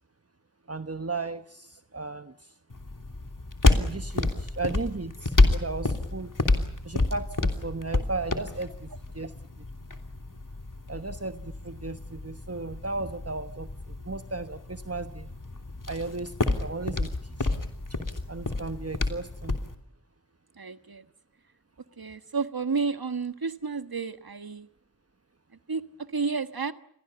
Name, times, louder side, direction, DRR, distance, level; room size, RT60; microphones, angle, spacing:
voice 1, 0.7-2.5 3.7-6.3 6.8-9.3 10.9-15.3 15.9-17.6 18.3-19.6, right 3 dB, 40° right, 9 dB, 1.1 m, -35 dB
sound 1, 2.7-19.7, left 2 dB, 60° left, 3.0 m, -29 dB
voice 2, 20.6-21.0 22.0-24.7 25.7-26.7, right 4 dB, 80° right, 10 dB, 1.5 m, -31 dB
29.5 x 23.0 x 7.0 m, 0.70 s
wide cardioid pair, 45°, 36 cm